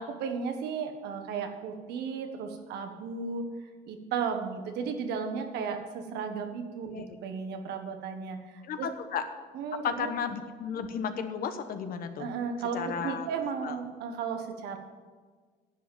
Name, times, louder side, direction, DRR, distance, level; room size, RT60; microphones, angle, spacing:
voice 1, 0.0-3.4 3.9-8.9 9.5-10.1 12.2-14.8, right 6 dB, 80° right, 5 dB, 1.5 m, -34 dB
voice 2, 8.6-9.2 9.8-12.3 12.7-13.3 13.6-13.8, left 7 dB, 60° left, 9 dB, 1.2 m, -33 dB
11.0 x 7.9 x 7.4 m, 1.5 s
cardioid pair, 110°, 17 cm